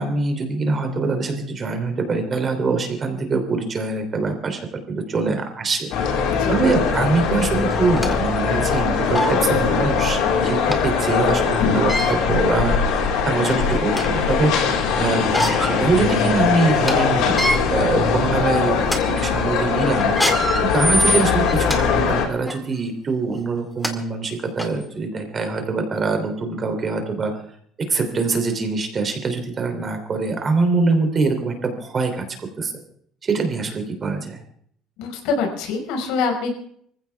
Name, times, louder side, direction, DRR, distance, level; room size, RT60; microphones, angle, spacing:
voice 1, 0.0-5.9 6.5-12.9 13.2-14.5 15.0-17.4 17.7-20.1 20.6-27.4 27.9-32.2 32.6-32.7 33.2-34.4, right 4 dB, 25° right, 6 dB, 3.2 m, -23 dB
sound 1, 5.9-22.3, left 6 dB, 70° left, 4.5 m, -21 dB
voice 2, 6.3-6.6 35.0-36.5, left 4 dB, 85° left, 3 dB, 5.2 m, -25 dB
sound 2, 7.0-7.1 7.7-8.2 8.7-8.8 9.1-9.4 10.7-10.8 11.7-12.2 12.9-13.0 13.5-14.2 15.1-15.8 16.2-16.3 16.7-16.9 17.3-17.6 18.2-18.4 18.8-19.0 20.0-21.8 22.4-22.6 23.4-23.5 23.8-23.9 24.6-24.7, equal, 5° left, 2.0 m, -23 dB
25.0 x 15.5 x 3.5 m, 0.64 s
cardioid pair, 165°, 0 cm